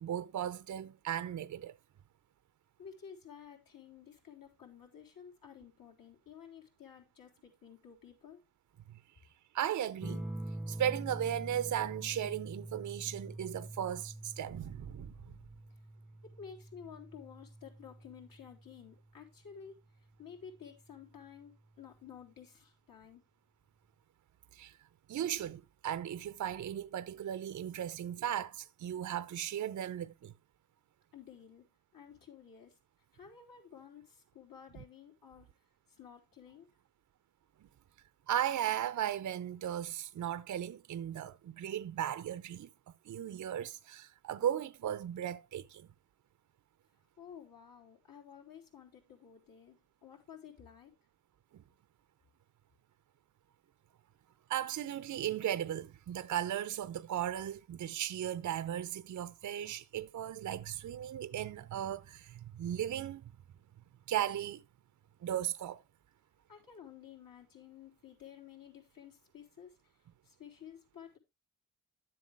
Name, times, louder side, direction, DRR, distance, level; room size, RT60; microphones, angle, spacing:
voice 1, 0.0-1.7 9.5-10.3 10.7-15.1 24.5-24.7 25.1-30.3 38.3-42.7 43.1-45.9 54.5-63.3 64.1-64.6 65.2-65.8, right 10 dB, 50° right, 0.7 m, -36 dB
voice 2, 2.8-8.4 16.2-23.2 31.1-31.7 31.9-32.8 33.1-35.5 35.9-36.7 47.2-50.9 66.5-71.2, left 8 dB, 65° left, 3.6 m, -53 dB
sound 1, 10.0-19.1 20.5-21.1, right 1 dB, 5° right, 0.8 m, -45 dB
12.0 x 7.6 x 3.4 m
cardioid pair, 75°, 37 cm